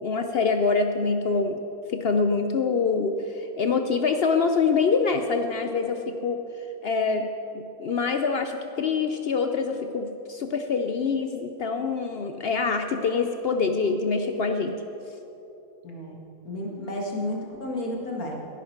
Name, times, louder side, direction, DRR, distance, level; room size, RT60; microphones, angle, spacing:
voice 1, 0.0-1.6 1.9-7.3 7.5-14.8, left 4 dB, 60° left, 6 dB, 0.6 m, -25 dB
voice 2, 15.8-18.4, left 1 dB, 80° left, -1 dB, 2.3 m, -32 dB
16.5 x 10.0 x 4.4 m, 3.0 s
omnidirectional pair, 1.5 m